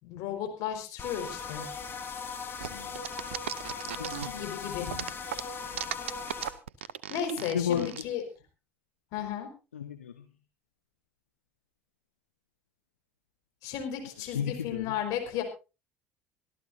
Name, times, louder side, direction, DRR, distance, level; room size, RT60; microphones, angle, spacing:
voice 1, 0.0-1.7 4.4-4.9 7.1-8.2 9.1-9.5 13.6-15.4, left 9 dB, 60° left, 5 dB, 4.5 m, -34 dB
sound 1, 1.0-6.5, left 5 dB, 35° left, 3.6 m, -39 dB
sound 2, 2.6-4.5 4.9-8.0, right 11 dB, 75° right, 0.6 m, -36 dB
voice 2, 3.9-5.1 5.7-5.8 7.4-7.9 9.7-10.2 14.2-14.9, left 8 dB, 80° left, 8 dB, 1.0 m, -34 dB
25.0 x 13.0 x 2.6 m, 0.31 s
figure-of-eight pair, 60°, 7 cm